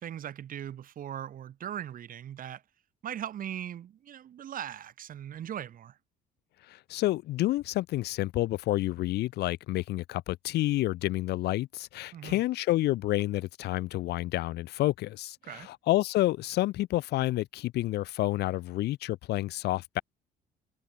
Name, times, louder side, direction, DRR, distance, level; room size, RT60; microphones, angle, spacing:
voice 1, 0.0-2.6 3.0-6.0 12.1-12.4 15.4-15.7, right 10 dB, 55° right, 4.9 m, -39 dB
voice 2, 6.7-20.0, left 16 dB, 80° left, 4.8 m, -29 dB
cardioid pair, 110°, 17 cm